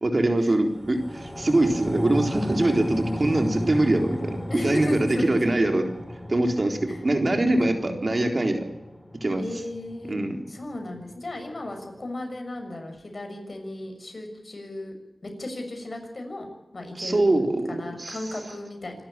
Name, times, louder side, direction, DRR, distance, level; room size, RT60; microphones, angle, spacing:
voice 1, 0.0-5.8 6.3-6.8 7.0-8.6 9.2-9.4 10.1-10.4 17.0-18.2, right 2 dB, 50° right, 4 dB, 3.8 m, -23 dB
sound 1, 0.6-11.2 11.5-11.6, left 1 dB, ahead, 4.7 m, -35 dB
voice 2, 4.5-5.5 6.9-7.0 7.6-8.0 9.4-10.2 10.5-14.9 15.2-17.4 17.7-19.0, left 1 dB, 55° left, 4 dB, 6.8 m, -35 dB
26.0 x 13.0 x 9.0 m, 0.96 s
wide cardioid pair, 55°, 0 cm